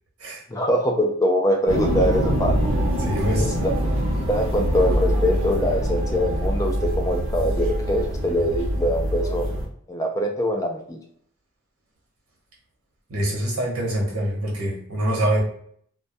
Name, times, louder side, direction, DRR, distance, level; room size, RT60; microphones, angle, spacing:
voice 1, 0.5-2.5 3.4-3.7 4.3-9.5 9.9-11.0, equal, 15° left, 2 dB, 0.4 m, -23 dB
sound 1, 1.7-9.7, equal, 60° right, 0.7 m, -24 dB
voice 2, 3.0-3.5 13.1-15.4, right 1 dB, 85° right, -3 dB, 0.9 m, -25 dB
2.2 x 2.2 x 2.6 m, 0.63 s
head